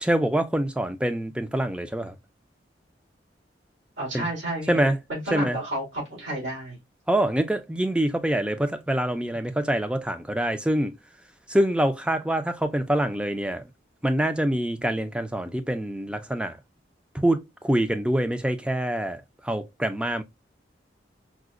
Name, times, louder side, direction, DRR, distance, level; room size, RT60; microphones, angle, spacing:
voice 1, 0.0-2.1 4.1-4.3 4.7-5.0 5.3-5.6 7.1-10.9 11.5-13.6 14.0-16.6 17.1-20.2, right 1 dB, 5° right, 0.3 m, -25 dB
voice 2, 4.0-6.8, right 1 dB, 85° right, 2.2 m, -31 dB
4.8 x 2.1 x 2.4 m
head